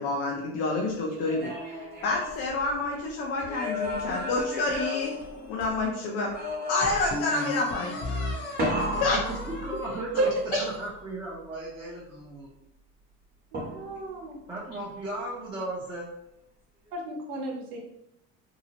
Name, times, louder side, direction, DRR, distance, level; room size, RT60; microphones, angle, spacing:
voice 1, 0.0-5.1 5.5-6.3 6.7-8.3 8.7-9.2 10.5-10.6, left 3 dB, 80° left, -2 dB, 0.6 m, -29 dB
sound 1, 1.1-3.0 3.4-5.8 6.3-7.3 8.6-10.2 13.5-14.2, left 1 dB, 30° right, 0.9 m, -33 dB
sound 2, 4.1-5.6 6.2-6.3 6.8-11.0, left 2 dB, 35° left, 0.7 m, -36 dB
voice 2, 9.0-10.3 10.6-12.5 14.5-16.1, right 1 dB, 15° right, -6 dB, 0.5 m, -36 dB
voice 3, 13.7-14.4 16.9-17.8, right 3 dB, 80° right, 0 dB, 0.8 m, -31 dB
2.7 x 2.0 x 2.8 m, 0.80 s
supercardioid pair, 105°, 32 cm